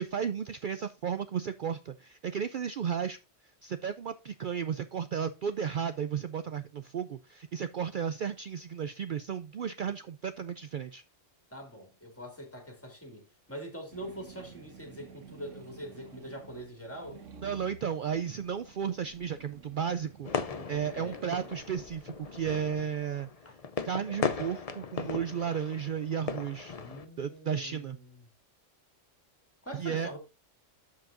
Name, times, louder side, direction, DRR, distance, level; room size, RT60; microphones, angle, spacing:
voice 1, 0.0-3.2 3.6-11.0 17.4-20.3 20.7-23.3 23.8-26.8 27.2-28.0 29.8-30.1, right 8 dB, 60° right, 0.5 m, -34 dB
voice 2, 11.5-17.2 20.5-21.3 23.4-23.5 26.7-28.3 29.6-30.2, equal, 10° left, 2.6 m, -44 dB
sound 1, 13.9-22.5, right 5 dB, 85° right, 1.5 m, -52 dB
sound 2, 20.2-27.1, left 5 dB, 40° left, 0.7 m, -37 dB
13.5 x 4.8 x 2.6 m
omnidirectional pair, 1.3 m